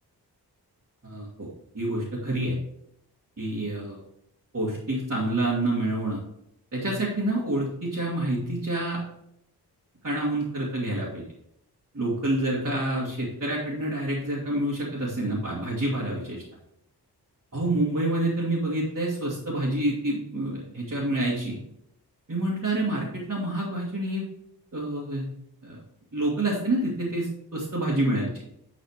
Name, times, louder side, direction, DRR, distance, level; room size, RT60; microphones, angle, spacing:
voice 1, 1.0-1.5 1.7-2.6 3.4-4.0 4.5-6.2 6.7-9.0 10.0-11.2 11.9-16.4 17.5-21.6 22.3-24.2 24.7-25.3 25.6-25.8 26.1-28.3, right 1 dB, 40° right, -6 dB, 2.2 m, -27 dB
10.0 x 4.1 x 5.0 m, 0.78 s
wide cardioid pair, 105°, 40 cm